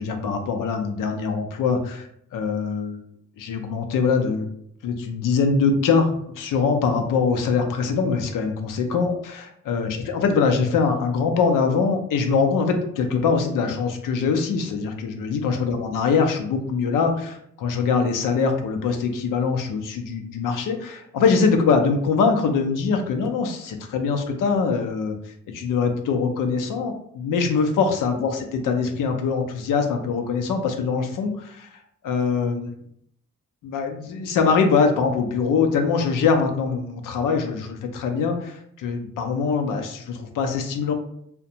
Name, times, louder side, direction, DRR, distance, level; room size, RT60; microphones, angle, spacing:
voice 1, 0.0-2.1 2.3-3.0 3.4-4.5 4.8-9.1 9.6-25.2 25.5-31.8 32.0-32.7 33.6-40.9, left 5 dB, 85° left, 5 dB, 0.5 m, -23 dB
2.5 x 2.1 x 2.8 m, 0.70 s
cardioid pair, 60°, 31 cm